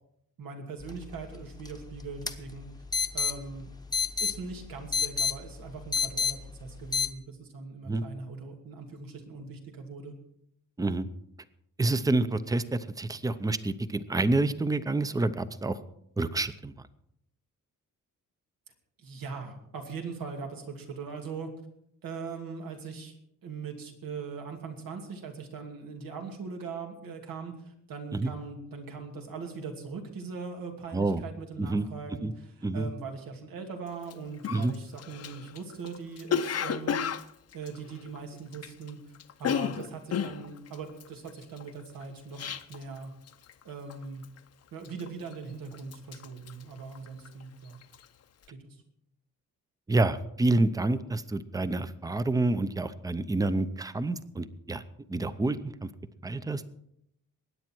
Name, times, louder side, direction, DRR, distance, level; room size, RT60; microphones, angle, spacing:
voice 1, 0.4-2.7 3.1-3.7 4.2-10.1 19.0-21.5 22.0-23.2 23.4-37.0 37.5-39.0 39.4-43.1 43.6-44.3 44.7-47.8 48.5-48.8, right 5 dB, 90° right, 3 dB, 2.6 m, -40 dB
sound 1, 0.8-7.1, left 6 dB, 10° left, 0.9 m, -32 dB
voice 2, 11.8-15.8 16.2-16.7 28.1-28.3 30.9-31.2 31.6-31.9 32.2-32.3 32.6-32.9 34.5-34.7 49.9-54.8 55.1-55.9 56.2-56.6, right 2 dB, 10° right, 13 dB, 0.6 m, -28 dB
Cough, 34.0-34.1 34.4-38.9 39.1-43.0 43.3-43.6 43.9-44.4 44.8-45.4 45.7-47.4 47.7-48.0, left 7 dB, 45° left, 0.7 m, -33 dB
21.5 x 9.6 x 4.6 m, 0.75 s
wide cardioid pair, 150°, 33 cm